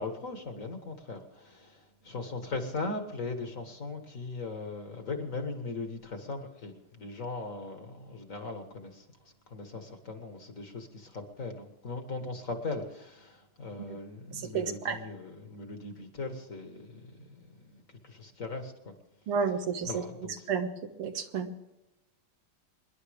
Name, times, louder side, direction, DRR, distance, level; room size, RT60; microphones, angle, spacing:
voice 1, 0.0-9.0 9.5-17.1 17.6-17.8 18.0-18.9 19.8-20.5, left 3 dB, 40° left, 6 dB, 1.8 m, -39 dB
voice 2, 14.5-15.0 19.3-20.0 20.5-20.7 21.0-21.5, right 6 dB, 90° right, 6 dB, 2.2 m, -30 dB
25.0 x 11.0 x 3.6 m, 0.96 s
omnidirectional pair, 2.4 m